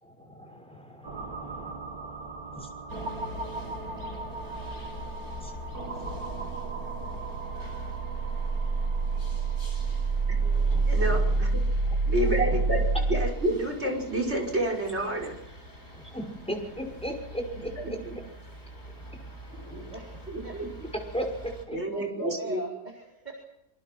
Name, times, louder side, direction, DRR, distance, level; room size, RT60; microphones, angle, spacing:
voice 1, 0.0-1.9 2.5-2.7 4.2-4.5 5.0-6.1 10.7-11.4 11.9-12.0 12.5-12.6 15.9-17.7 21.1-21.3 21.7-21.8, equal, 5° left, 3 dB, 6.1 m, -38 dB
sound 1, 1.0-13.3, right 3 dB, 70° right, 2.8 m, -29 dB
sound 2, 2.9-21.6, left 1 dB, 40° left, 7.6 m, -44 dB
voice 2, 10.9-11.6 12.0-15.3 17.8-18.2 19.7-19.8 20.3-20.9 21.7-22.6, right 1 dB, 40° right, 3 dB, 6.3 m, -29 dB
voice 3, 19.9-20.5 21.7-23.3, right 1 dB, 25° right, -1 dB, 4.5 m, -42 dB
27.0 x 26.5 x 6.2 m, 0.79 s
omnidirectional pair, 1.7 m